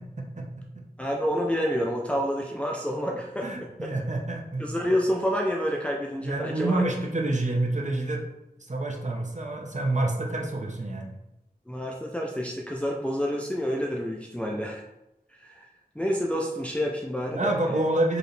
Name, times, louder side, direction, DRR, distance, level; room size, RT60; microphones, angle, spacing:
voice 1, 0.0-0.8 3.4-4.7 6.2-8.2 8.7-11.1 17.3-18.2, right 2 dB, 50° right, 0 dB, 0.8 m, -28 dB
voice 2, 1.0-3.5 3.8-3.9 4.6-6.8 11.7-14.8 15.3-15.7 16.0-17.8, equal, 5° left, -1 dB, 0.5 m, -28 dB
4.8 x 3.1 x 3.2 m, 0.91 s
wide cardioid pair, 45°, 16 cm